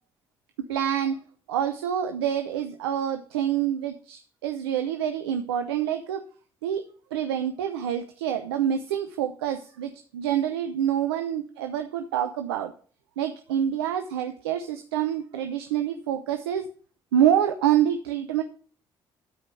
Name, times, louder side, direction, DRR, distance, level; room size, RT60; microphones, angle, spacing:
voice 1, 0.7-1.2 1.5-6.2 6.6-6.8 7.1-12.7 13.2-16.7 17.1-18.4, right 10 dB, 90° right, 7 dB, 0.7 m, -26 dB
12.5 x 5.1 x 6.9 m, 0.42 s
hypercardioid pair, 50°, 13 cm